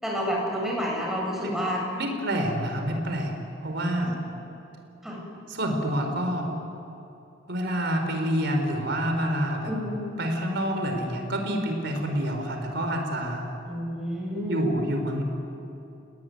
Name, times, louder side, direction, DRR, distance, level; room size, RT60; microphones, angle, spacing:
voice 1, 0.0-1.8 4.0-4.1 5.0-5.2 9.7-10.0 13.6-14.6, equal, ahead, -3 dB, 8.0 m, -29 dB
voice 2, 2.0-3.3 3.6-4.2 5.5-6.5 7.5-9.7 10.2-13.5 14.4-15.2, equal, 60° right, 4 dB, 4.6 m, -27 dB
30.0 x 19.0 x 9.6 m, 2.8 s
head